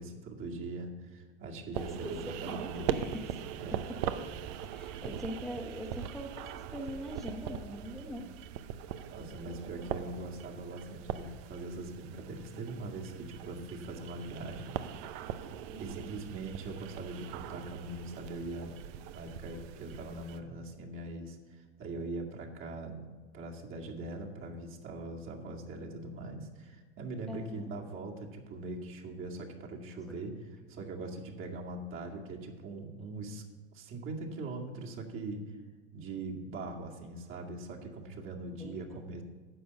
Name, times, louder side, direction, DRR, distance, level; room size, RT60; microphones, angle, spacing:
voice 1, 0.0-2.9 3.6-3.8 8.1-8.4 9.1-14.7 15.1-18.8 19.1-23.1 23.3-33.4 33.7-35.4 35.9-39.2, right 2 dB, 35° right, 0 dB, 2.2 m, -42 dB
voice 2, 1.7-3.4 3.7-3.9 4.6-8.3 15.7-16.0 27.3-27.7 29.9-30.0 38.6-38.8, equal, ahead, -1 dB, 1.3 m, -42 dB
sound 1, 1.7-20.4, right 10 dB, 55° right, 0.8 m, -41 dB
10.5 x 6.9 x 6.8 m, 1.4 s
hypercardioid pair, 100°, 35 cm